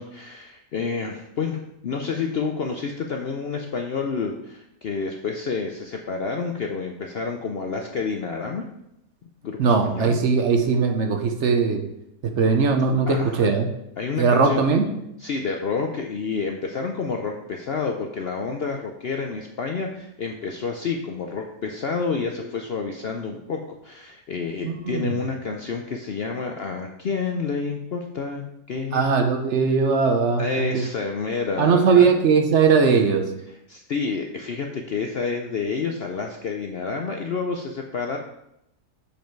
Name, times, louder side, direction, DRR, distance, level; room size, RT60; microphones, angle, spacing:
voice 1, 0.0-8.7 9.4-10.2 13.1-13.5 14.0-14.6 15.2-29.1 30.4-32.1 33.5-38.2, left 5 dB, 70° left, 3 dB, 0.5 m, -29 dB
voice 2, 9.6-11.8 12.2-13.7 14.2-14.9 24.6-25.1 28.9-30.8 31.6-33.2, right 5 dB, 55° right, 5 dB, 0.9 m, -19 dB
7.0 x 5.2 x 4.5 m, 0.82 s
omnidirectional pair, 1.7 m